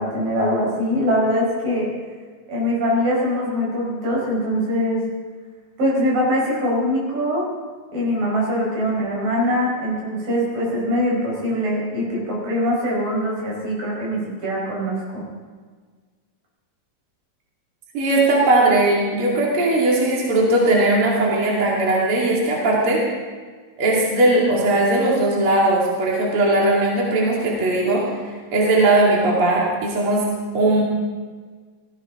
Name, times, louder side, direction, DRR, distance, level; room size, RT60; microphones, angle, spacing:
voice 1, 0.0-1.9 2.5-5.0 5.8-7.4 7.9-15.2, equal, 75° right, -4 dB, 6.4 m, -22 dB
voice 2, 17.9-23.0 23.8-30.3 30.5-30.8, right 2 dB, 45° right, -4 dB, 3.0 m, -18 dB
17.0 x 15.5 x 3.7 m, 1.5 s
omnidirectional pair, 3.9 m